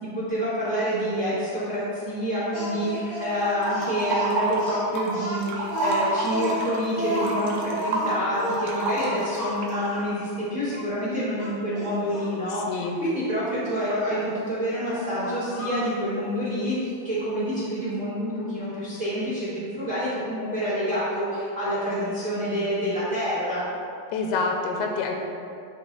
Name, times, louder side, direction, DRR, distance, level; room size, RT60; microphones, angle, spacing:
voice 1, 0.0-23.6, equal, 55° right, -11 dB, 0.8 m, -27 dB
Speech, 2.5-10.1 10.7-10.9 11.4-12.3 13.7-14.0 15.2-16.0, left 1 dB, 50° left, 0.9 m, -32 dB
sound 1, 3.6-5.1 5.4-9.8, right 3 dB, 80° right, 2.9 m, -29 dB
voice 2, 12.5-13.0 24.1-25.2, left 4 dB, 85° left, 2 dB, 2.6 m, -27 dB
12.0 x 4.1 x 3.8 m, 2.5 s
omnidirectional pair, 4.5 m